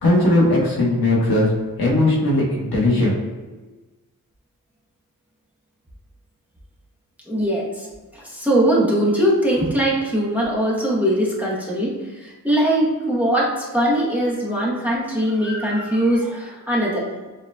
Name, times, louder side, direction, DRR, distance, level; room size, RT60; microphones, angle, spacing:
voice 1, 0.0-1.5 1.8-3.2, left 1 dB, 80° left, -3 dB, 1.3 m, -18 dB
voice 2, 7.3-7.9 8.1-17.3, right 1 dB, 5° right, -5 dB, 0.9 m, -21 dB
7.3 x 3.0 x 2.2 m, 1.2 s
wide cardioid pair, 120°, 36 cm